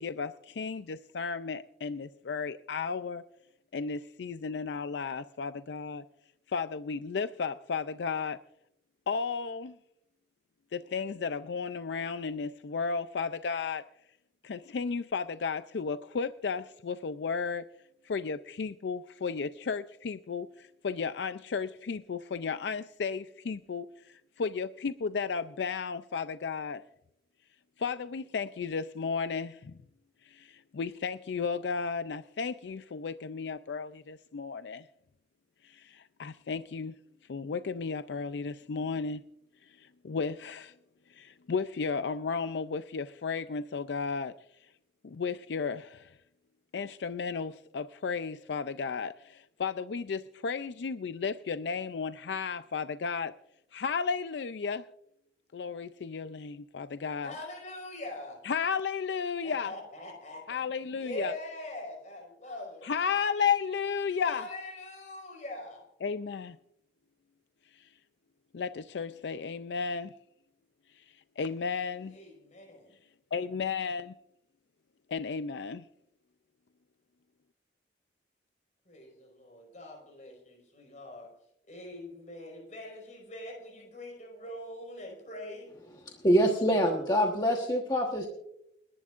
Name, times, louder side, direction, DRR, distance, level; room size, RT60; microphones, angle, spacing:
voice 1, 0.0-3.2 3.7-6.0 6.5-8.4 9.1-9.8 10.7-13.8 14.4-17.7 18.0-26.8 27.8-29.8 30.2-34.9 35.6-36.9 37.3-39.2 39.6-40.7 41.1-44.3 44.6-44.7 45.0-46.2 46.7-53.3 53.7-54.8 55.5-57.3 58.4-59.7 60.5-61.3 62.8-64.5 66.0-66.6 67.7-67.9 68.5-70.1 70.9-72.2 73.3-74.1 75.1-75.9, left 5 dB, 75° left, 12 dB, 0.4 m, -34 dB
voice 2, 57.2-58.4 59.4-60.6 61.0-62.9 64.2-65.8 72.1-72.9 78.9-81.3 81.7-85.7, left 1 dB, 45° left, 1 dB, 4.9 m, -43 dB
voice 3, 86.2-88.3, equal, 25° left, 1 dB, 1.2 m, -25 dB
30.0 x 11.0 x 2.5 m, 0.81 s
head